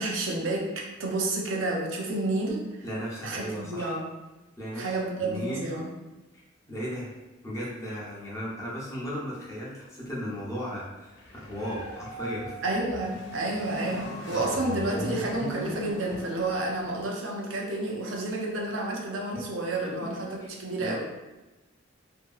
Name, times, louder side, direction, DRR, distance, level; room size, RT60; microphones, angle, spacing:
voice 1, 0.0-2.6 3.2-4.0 4.7-5.9 12.6-21.0, right 2 dB, 80° right, -1 dB, 0.6 m, -30 dB
voice 2, 2.8-4.0 4.6-5.7 6.7-7.1 7.4-12.6 19.8-20.0 20.4-20.5 20.8-21.0, equal, 15° left, -6 dB, 0.7 m, -36 dB
sound 1, 11.1-17.0, left 1 dB, 65° left, 0.6 m, -39 dB
Dog, 11.5-16.7 17.2-17.3, right 1 dB, 45° right, 0.7 m, -45 dB
2.7 x 2.7 x 2.3 m, 1.1 s
head